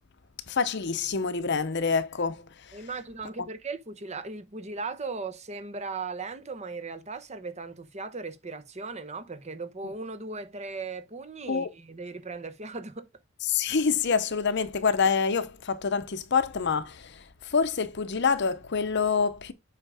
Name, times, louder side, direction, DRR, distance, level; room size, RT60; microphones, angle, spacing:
voice 1, 0.5-2.4 11.5-11.7 13.5-19.5, left 5 dB, 55° left, 0.8 m, -26 dB
voice 2, 2.7-13.1, right 4 dB, 35° right, 1.0 m, -37 dB
8.2 x 5.1 x 3.4 m
head